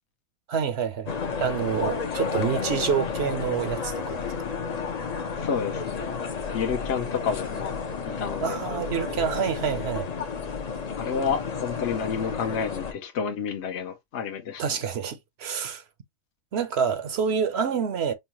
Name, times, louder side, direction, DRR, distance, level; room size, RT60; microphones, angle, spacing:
voice 1, 0.5-1.1 1.4-4.3 8.4-10.1 14.6-15.8 16.5-18.1, right 7 dB, 65° right, 0.9 m, -27 dB
sound 1, 1.1-12.9, left 5 dB, 45° left, 0.6 m, -31 dB
voice 2, 5.4-6.2 6.5-8.6 11.0-14.6, left 6 dB, 65° left, 1.0 m, -30 dB
5.5 x 2.2 x 2.8 m
omnidirectional pair, 1.3 m